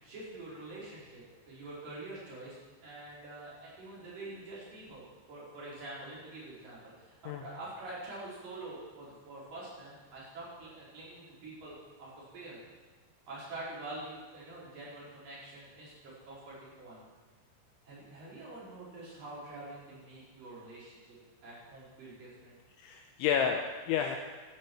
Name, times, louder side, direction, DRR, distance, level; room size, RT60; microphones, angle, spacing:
voice 1, 0.0-2.6 2.8-12.6 13.3-17.0 17.8-21.2 21.4-22.6, right 2 dB, 40° right, -7 dB, 6.3 m, -46 dB
voice 2, 22.8-24.2, left 7 dB, 80° left, 4 dB, 2.8 m, -30 dB
16.0 x 12.5 x 4.8 m, 1.3 s
omnidirectional pair, 6.0 m